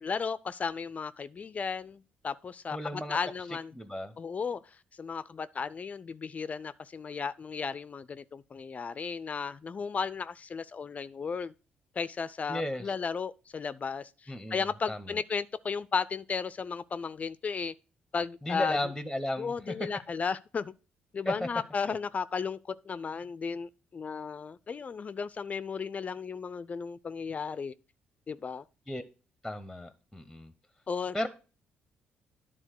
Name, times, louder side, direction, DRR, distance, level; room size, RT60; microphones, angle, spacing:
voice 1, 0.0-3.7 4.2-11.5 12.0-17.7 18.1-18.8 19.4-20.7 21.1-27.7 28.3-28.6 30.9-31.2, left 5 dB, 40° left, 0.4 m, -35 dB
voice 2, 2.7-3.2 3.7-4.1 12.5-12.9 14.3-15.1 18.4-19.9 21.2-21.5 21.9-22.0 28.9-29.0 29.4-30.5 31.1-31.3, left 1 dB, ahead, 0.8 m, -35 dB
10.0 x 3.7 x 6.4 m
supercardioid pair, 75°, 4 cm